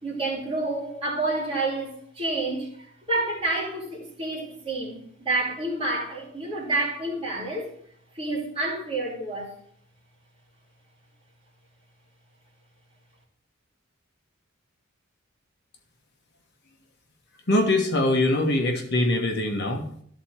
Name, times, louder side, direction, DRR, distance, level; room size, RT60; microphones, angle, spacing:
voice 1, 0.0-7.7 8.1-9.6, right 2 dB, 30° right, 2.8 m, -29 dB
voice 2, 17.5-20.0, left 1 dB, 55° left, 1.3 m, -23 dB
13.0 x 4.3 x 4.7 m
head